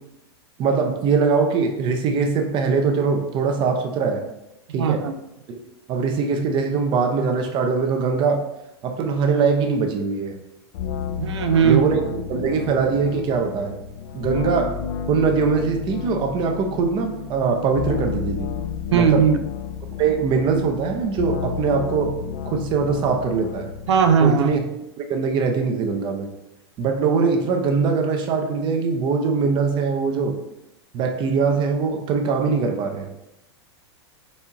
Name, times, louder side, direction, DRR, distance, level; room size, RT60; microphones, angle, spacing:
voice 1, 0.6-4.2 4.7-5.0 5.5-5.6 5.9-8.4 8.8-10.3 11.6-12.0 12.3-13.7 14.1-14.8 15.1-18.5 18.9-19.2 20.0-22.2 22.4-23.7 24.2-24.6 25.0-26.3 26.8-30.4 30.9-33.1, right 5 dB, 35° right, 5 dB, 0.6 m, -22 dB
voice 2, 4.7-5.2 11.2-11.8 18.9-19.4 23.9-24.5, right 7 dB, 85° right, 8 dB, 0.5 m, -18 dB
sound 1, 10.7-24.6, left 7 dB, 60° left, 0.4 m, -32 dB
4.2 x 3.5 x 2.8 m, 0.88 s
hypercardioid pair, 125°, 14 cm